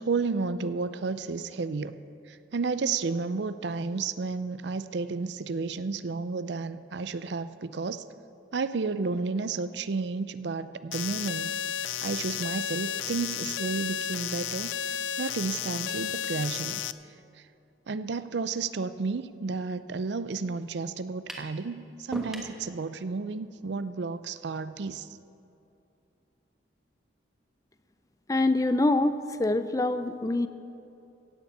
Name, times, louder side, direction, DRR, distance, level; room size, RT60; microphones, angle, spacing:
voice 1, 0.0-1.9 2.3-8.0 8.5-11.5 12.0-16.8 17.9-25.1, right 4 dB, 65° right, 13 dB, 0.5 m, -32 dB
sound 1, 10.9-16.9, left 10 dB, 80° left, 0.4 m, -33 dB
sound 2, 21.3-21.5 22.1-22.6, equal, 5° right, 1.2 m, -38 dB
voice 2, 28.3-30.5, left 2 dB, 15° left, 11 dB, 0.4 m, -25 dB
16.5 x 7.0 x 8.1 m, 2.8 s
head